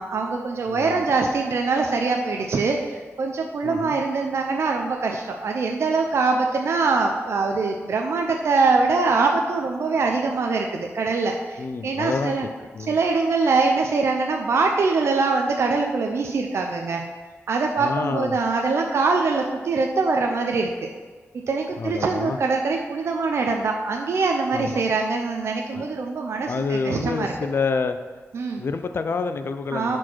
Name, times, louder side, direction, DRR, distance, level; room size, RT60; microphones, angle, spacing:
voice 1, 0.0-12.5 12.9-17.0 17.5-20.9 21.5-27.3 28.3-28.6 29.7-30.0, right 4 dB, 65° right, 2 dB, 0.6 m, -23 dB
voice 2, 0.6-1.0 3.6-4.0 11.6-12.3 12.7-13.0 17.8-18.4 21.8-22.4 24.5-24.8 25.7-25.9 26.4-28.0 28.6-30.0, left 4 dB, 50° left, 9 dB, 0.5 m, -28 dB
10.5 x 4.5 x 4.5 m, 1.4 s
wide cardioid pair, 135°, 5 cm